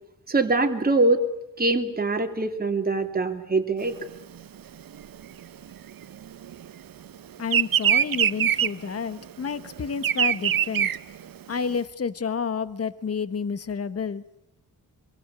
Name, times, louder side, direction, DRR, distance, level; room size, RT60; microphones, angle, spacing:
voice 1, 0.3-1.2 1.6-4.0, right 3 dB, 25° right, 5 dB, 2.9 m, -23 dB
Bird vocalization bird call bird song, 3.9-6.8 7.1-11.8, right 10 dB, 70° right, 1.0 m, -24 dB
voice 2, 7.4-10.9 11.5-14.2, left 6 dB, 40° left, 14 dB, 1.3 m, -30 dB
26.0 x 24.5 x 8.7 m, 0.83 s
wide cardioid pair, 160°, 36 cm